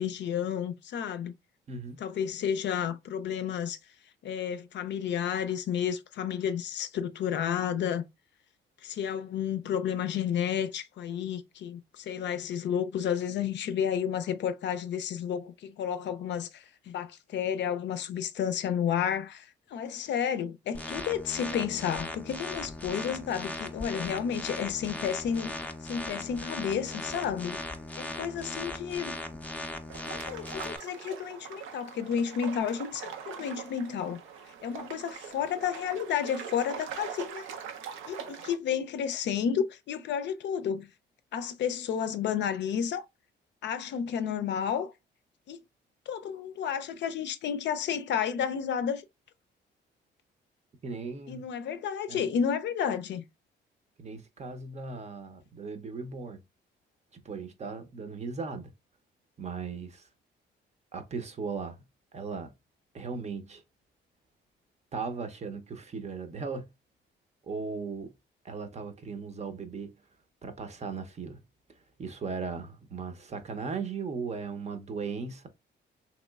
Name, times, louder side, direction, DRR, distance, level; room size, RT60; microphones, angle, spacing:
voice 1, 0.0-1.3 2.0-3.8 4.2-8.0 8.8-25.5 25.8-27.6 28.0-29.2 30.1-34.2 34.6-37.5 38.1-40.9 41.3-43.1 43.6-44.9 45.5-45.6 46.1-49.0 51.3-53.2, left 8 dB, 65° left, 0.4 m, -31 dB
voice 2, 1.7-2.0 50.8-51.4 52.1-52.3 54.0-56.4 57.1-58.7 59.4-60.1 60.9-61.8 62.1-62.5 62.9-63.6 64.9-66.7 67.4-68.1 68.4-69.9 70.4-71.4 72.0-75.5, right 4 dB, 35° right, 0.6 m, -37 dB
sound 1, 20.7-30.8, left 2 dB, 5° left, 0.4 m, -38 dB
sound 2, 29.9-38.5, right 7 dB, 85° right, 0.6 m, -42 dB
3.0 x 2.9 x 2.3 m
cardioid pair, 90°, 20 cm